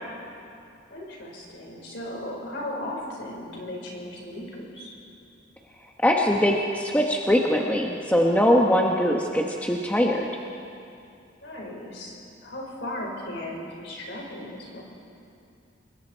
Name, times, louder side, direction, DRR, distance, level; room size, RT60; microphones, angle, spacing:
voice 1, 0.9-4.9 11.4-12.2 12.4-14.8, left 1 dB, 60° left, -1 dB, 4.9 m, -36 dB
voice 2, 6.0-10.3, equal, 10° left, 0 dB, 1.0 m, -22 dB
26.0 x 22.0 x 4.5 m, 2.5 s
head